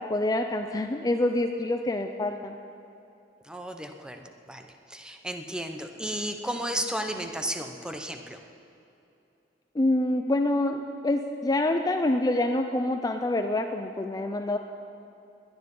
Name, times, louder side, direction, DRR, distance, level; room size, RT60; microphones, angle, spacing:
voice 1, 0.0-2.6 9.7-14.6, left 1 dB, 20° left, 5 dB, 0.5 m, -26 dB
voice 2, 3.4-8.4, equal, 5° right, 5 dB, 0.8 m, -34 dB
20.0 x 9.9 x 5.5 m, 2.8 s
head